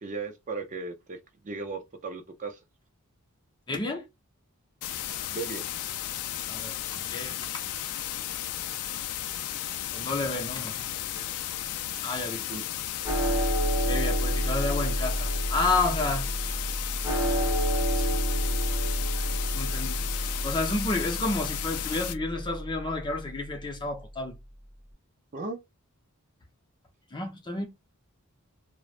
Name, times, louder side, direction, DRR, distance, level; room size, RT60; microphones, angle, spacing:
voice 1, 0.0-1.2 1.4-2.6 5.3-5.7 12.5-12.6 25.3-25.6, right 3 dB, 35° right, 0.5 m, -36 dB
voice 2, 3.7-4.0 6.5-7.6 9.9-11.3 12.0-12.4 13.9-16.3 18.8-18.9 19.5-20.1 20.4-24.4 27.1-27.7, left 3 dB, 20° left, 0.6 m, -31 dB
sound 1, 4.8-22.2, left 12 dB, 90° left, 0.3 m, -34 dB
sound 2, 13.0-23.5, equal, 5° right, 1.1 m, -29 dB
3.0 x 2.1 x 2.4 m
head